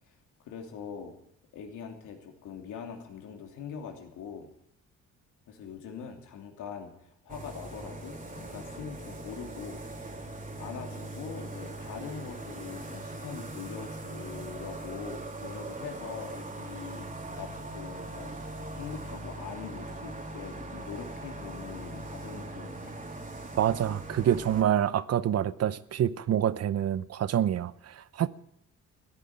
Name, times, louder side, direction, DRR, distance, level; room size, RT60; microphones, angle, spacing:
voice 1, 0.4-1.1 1.5-4.5 5.5-10.3 10.6-23.0, left 7 dB, 85° left, 3.1 m, -43 dB
sound 1, 7.3-24.6, right 2 dB, 25° right, 3.2 m, -41 dB
voice 2, 23.6-28.3, right 10 dB, 55° right, 0.8 m, -27 dB
16.0 x 10.0 x 8.9 m
cardioid pair, 90°, 30 cm